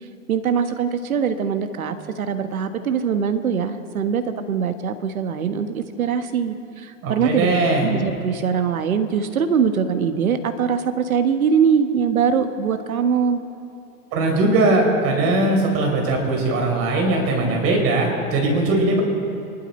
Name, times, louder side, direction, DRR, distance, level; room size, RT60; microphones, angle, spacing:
voice 1, 0.3-7.5 7.8-13.4, right 7 dB, 80° right, 9 dB, 1.4 m, -22 dB
voice 2, 7.0-7.9 14.1-19.0, right 2 dB, 35° right, 0 dB, 4.4 m, -20 dB
27.0 x 12.0 x 4.4 m, 2.6 s
hypercardioid pair, 120°, 41 cm